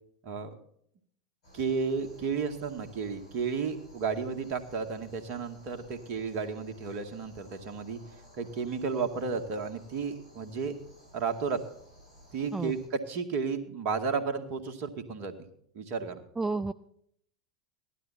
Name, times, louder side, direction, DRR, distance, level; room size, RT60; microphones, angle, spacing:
voice 1, 0.2-0.6 1.5-8.0 8.4-10.8 11.1-11.6 12.3-15.4 15.7-16.2, right 5 dB, 45° right, 7 dB, 2.0 m, -33 dB
sound 1, 1.4-12.9, equal, 70° left, 7.3 m, -55 dB
voice 2, 16.4-16.7, right 3 dB, 10° right, 10 dB, 0.4 m, -30 dB
16.5 x 12.0 x 4.3 m, 0.67 s
figure-of-eight pair, 90°, 3 cm